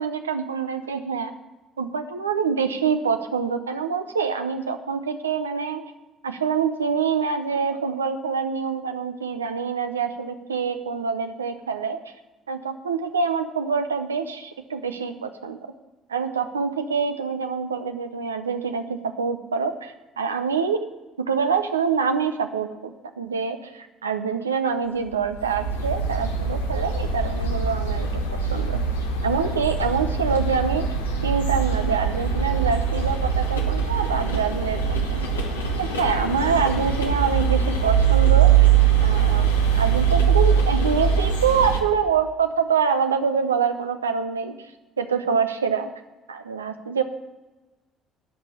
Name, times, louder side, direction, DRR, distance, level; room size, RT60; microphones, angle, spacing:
voice 1, 0.0-1.3 1.8-5.8 6.2-12.0 12.5-15.6 16.1-20.9 21.2-28.1 28.5-28.8 29.2-30.9 31.2-35.3 35.8-38.5 39.0-44.6 45.0-45.9 46.3-47.0, right 6 dB, 90° right, 8 dB, 0.7 m, -25 dB
sound 1, 25.2-41.8, right 7 dB, 90° left, 1.1 m, -22 dB
13.0 x 5.7 x 8.3 m, 1.1 s
hypercardioid pair, 55°, 0 cm